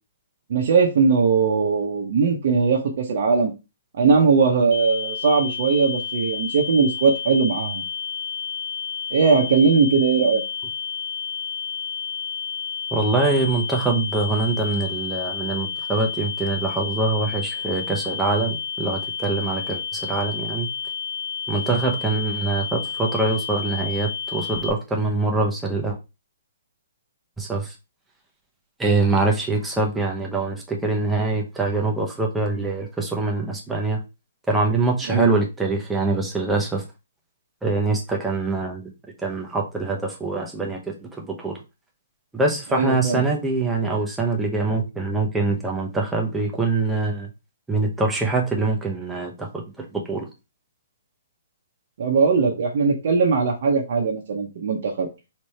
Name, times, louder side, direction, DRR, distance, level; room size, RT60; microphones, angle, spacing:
voice 1, 0.5-3.5 4.0-7.8 9.1-10.4 35.1-35.3 42.7-43.2 52.0-55.1, right 5 dB, 40° right, 2 dB, 0.8 m, -19 dB
sound 1, 4.7-24.7, left 7 dB, 85° left, 1.9 m, -31 dB
voice 2, 12.9-20.7 21.5-26.0 27.4-27.7 28.8-34.0 34.5-36.8 37.6-38.9 39.2-41.6 42.3-47.3 47.7-50.3, right 3 dB, 5° right, 0 dB, 0.6 m, -24 dB
3.3 x 3.3 x 4.2 m, 0.27 s
hypercardioid pair, 175°, 0 cm